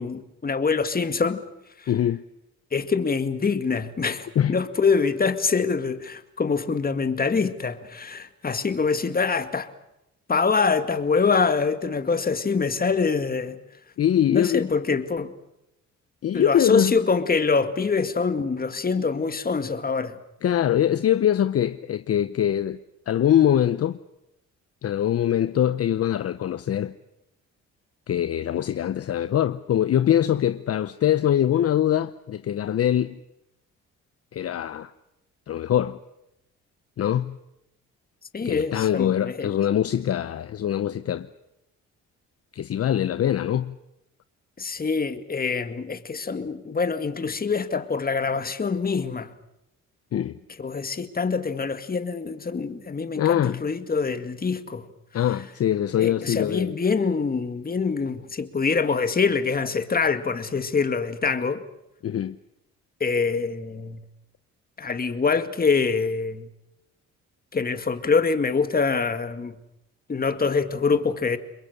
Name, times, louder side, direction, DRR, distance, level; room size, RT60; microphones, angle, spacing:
voice 1, 0.0-1.4 1.8-1.9 2.7-9.7 10.3-13.6 14.3-15.3 16.3-20.2 38.3-39.5 44.6-49.3 50.6-54.9 56.0-61.6 63.0-64.0 64.8-66.5 67.5-69.6 70.1-71.4, left 5 dB, 30° left, 2.1 m, -25 dB
voice 2, 1.9-2.2 4.4-4.5 14.0-14.6 16.2-16.9 20.4-22.8 23.1-24.0 24.8-26.9 28.1-33.2 34.3-34.9 35.5-36.0 37.0-37.4 38.4-41.3 42.5-43.8 50.1-50.4 53.2-53.6 55.1-56.7 62.0-62.4, left 10 dB, 50° left, 0.8 m, -23 dB
29.5 x 22.0 x 6.6 m
cardioid pair, 90°, 30 cm